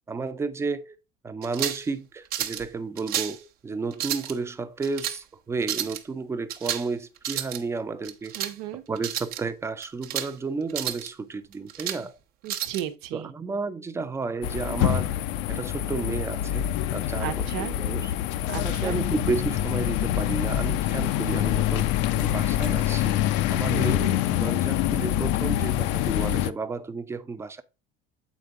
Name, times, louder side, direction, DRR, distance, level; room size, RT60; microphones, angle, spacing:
voice 1, 0.1-0.9 1.2-8.5 8.9-12.2 13.1-15.1 15.5-18.1 18.6-21.9 22.2-23.2 23.5-27.6, right 4 dB, 15° right, 0.5 m, -32 dB
sound 1, 1.4-1.9 2.3-2.6 3.0-3.4 3.9-4.3 4.8-5.2 5.6-6.0 6.5-6.9 7.2-7.6 8.0-8.5 9.0-9.4 9.8-10.3 10.7-11.1 11.5-12.0 12.5-12.8, right 10 dB, 50° right, 0.9 m, -31 dB
voice 2, 8.4-8.8 12.4-13.3 17.2-17.8 18.5-19.0 23.7-24.2, right 12 dB, 85° right, 1.1 m, -34 dB
sound 2, 14.4-26.5, left 12 dB, 65° left, 0.6 m, -25 dB
8.2 x 4.3 x 3.7 m
cardioid pair, 165°, 20 cm